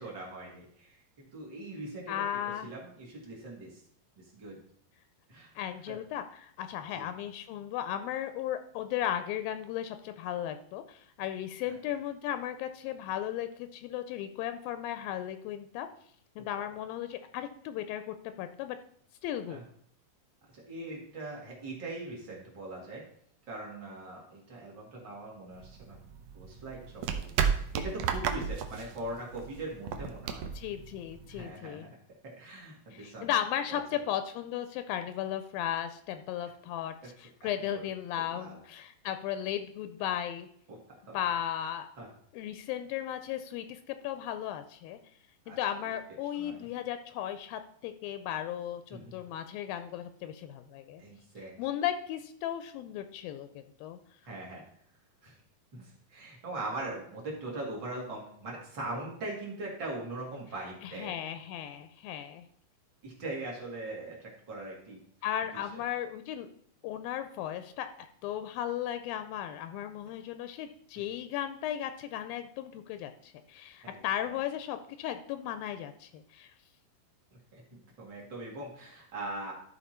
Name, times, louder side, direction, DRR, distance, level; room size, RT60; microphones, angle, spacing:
voice 1, 0.0-2.1 2.6-3.8 4.2-4.6 5.3-5.5 5.9-6.0 6.9-7.1 11.7-11.8 19.5-19.6 20.5-23.0 23.5-26.0 26.3-30.5 31.3-31.9 32.4-33.3 33.7-33.8 37.4-37.8 38.3-38.6 40.7-40.8 41.1-41.2 42.0-42.1 45.5-45.6 46.3-46.7 48.9-49.1 51.0-51.5 54.2-54.6 55.2-55.4 55.7-61.1 63.0-65.0 65.5-65.8 73.8-74.3 77.3-79.5, right 2 dB, 35° right, -2 dB, 2.3 m, -41 dB
voice 2, 2.1-2.7 5.6-15.9 16.4-18.8 19.2-19.6 30.4-31.9 32.9-40.5 41.1-41.9 42.3-45.0 45.5-51.0 51.6-54.0 60.8-62.5 65.2-66.5 66.8-76.5, left 11 dB, 85° left, 10 dB, 2.3 m, -36 dB
sound 1, 25.5-31.5, right 7 dB, 80° right, 1.8 m, -33 dB
12.5 x 4.3 x 4.3 m, 0.64 s
omnidirectional pair, 4.2 m